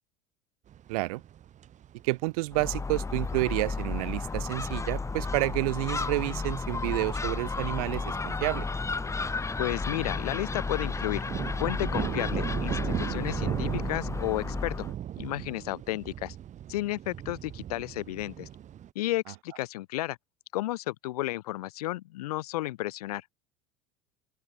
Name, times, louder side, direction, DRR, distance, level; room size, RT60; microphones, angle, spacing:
sound 1, 0.7-18.9, right 11 dB, 35° right, 2.0 m, -39 dB
voice 1, 0.9-1.2 2.0-8.7, right 24 dB, 60° right, 1.8 m, -30 dB
Gull seagull, 2.5-14.9, left 4 dB, 15° left, 1.7 m, -33 dB
voice 2, 9.6-11.3 11.6-14.9 15.2-16.3 16.7-18.5 18.9-20.2 20.5-23.2, left 16 dB, 65° left, 1.1 m, -32 dB
open air
figure-of-eight pair, 70°, 21 cm